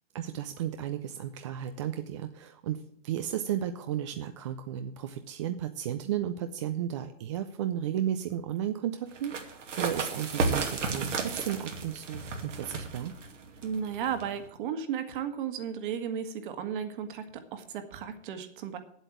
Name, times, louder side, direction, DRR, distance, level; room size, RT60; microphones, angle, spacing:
voice 1, 0.1-13.1, right 10 dB, 25° right, 8 dB, 0.4 m, -34 dB
sound 1, 9.1-14.5, right 4 dB, 90° right, 2.5 m, -33 dB
voice 2, 13.6-18.8, right 8 dB, 45° right, 8 dB, 1.7 m, -34 dB
8.2 x 8.0 x 9.0 m, 0.68 s
hypercardioid pair, 145°, 36 cm